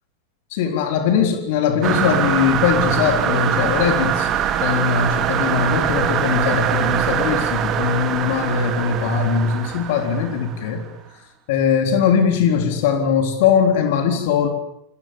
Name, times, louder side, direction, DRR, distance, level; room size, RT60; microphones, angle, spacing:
voice 1, 0.5-4.3 4.6-10.8 11.5-14.5, left 6 dB, 50° left, 6 dB, 3.8 m, -20 dB
sound 1, 1.8-10.8, right 9 dB, 30° right, 3.1 m, -23 dB
29.0 x 24.0 x 7.1 m, 0.79 s
figure-of-eight pair, 90°, 0 cm